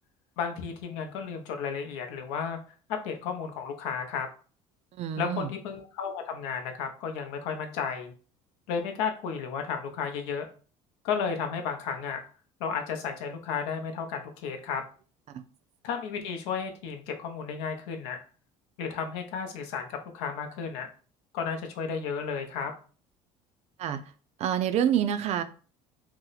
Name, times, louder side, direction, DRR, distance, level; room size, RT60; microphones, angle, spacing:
voice 1, 0.4-2.6 2.9-4.3 5.2-8.1 8.7-10.5 11.0-12.2 12.6-14.8 15.8-18.2 18.8-20.9 21.3-22.7, left 6 dB, 90° left, 5 dB, 0.6 m, -33 dB
voice 2, 5.0-5.5 15.3-15.4 23.8-24.0 24.4-25.4, right 9 dB, 50° right, 11 dB, 0.4 m, -27 dB
2.8 x 2.1 x 3.9 m, 0.39 s
supercardioid pair, 100°, 14 cm